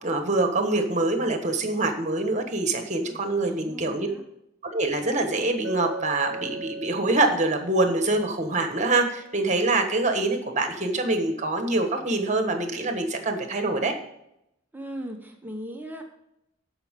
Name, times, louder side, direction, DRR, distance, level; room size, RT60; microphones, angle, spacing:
voice 1, 0.0-4.1 4.6-13.9, right 2 dB, 35° right, 5 dB, 1.4 m, -25 dB
voice 2, 3.4-4.2 14.7-16.0, equal, 10° right, 2 dB, 1.1 m, -38 dB
Chink clink, 5.6-9.7, right 2 dB, 65° right, 0.8 m, -39 dB
14.0 x 5.7 x 3.7 m, 0.80 s
head